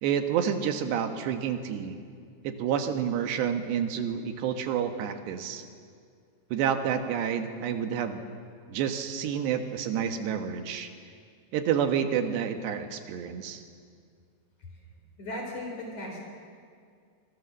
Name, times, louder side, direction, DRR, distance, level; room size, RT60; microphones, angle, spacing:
voice 1, 0.0-2.0 2.5-5.6 6.5-8.2 8.7-10.9 11.5-13.6, right 8 dB, 70° right, 7 dB, 3.6 m, -29 dB
voice 2, 15.2-16.2, left 1 dB, 40° left, 1 dB, 5.1 m, -37 dB
26.0 x 25.0 x 7.4 m, 2.2 s
omnidirectional pair, 5.2 m